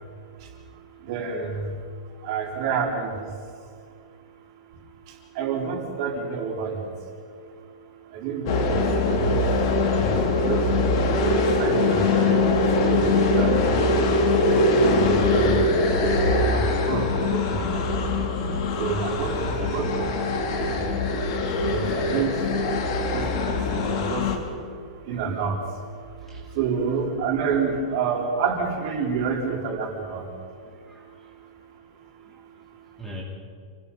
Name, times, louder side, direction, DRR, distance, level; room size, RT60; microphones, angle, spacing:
voice 1, 1.0-1.7 2.2-3.2 5.3-6.8 8.1-9.4 9.9-10.7 11.2-14.0 14.5-17.9 18.8-20.9 21.6-22.3 23.1-24.3 25.1-25.6 26.5-30.3, right 5 dB, 40° right, 0 dB, 4.2 m, -29 dB
sound 1, 8.5-24.4, left 2 dB, 45° left, 3.0 m, -22 dB
voice 2, 19.3-19.8 26.3-26.6 30.6-31.3 32.2-32.4 33.0-33.2, equal, 5° left, -3 dB, 2.9 m, -41 dB
29.0 x 19.0 x 5.7 m, 2.3 s
supercardioid pair, 170°, 4 cm